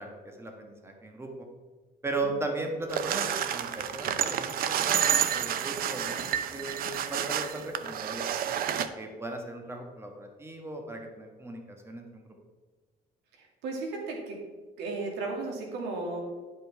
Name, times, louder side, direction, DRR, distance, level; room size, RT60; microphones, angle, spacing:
voice 1, 0.0-1.5 2.0-8.2 8.7-12.3, right 2 dB, 15° right, 2 dB, 1.4 m, -37 dB
sound 1, 2.9-8.9, right 9 dB, 60° right, 0.6 m, -29 dB
voice 2, 13.4-14.4 14.8-16.2, right 3 dB, 90° right, 1 dB, 2.1 m, -35 dB
11.0 x 5.4 x 4.7 m, 1.4 s
cardioid pair, 110°, 17 cm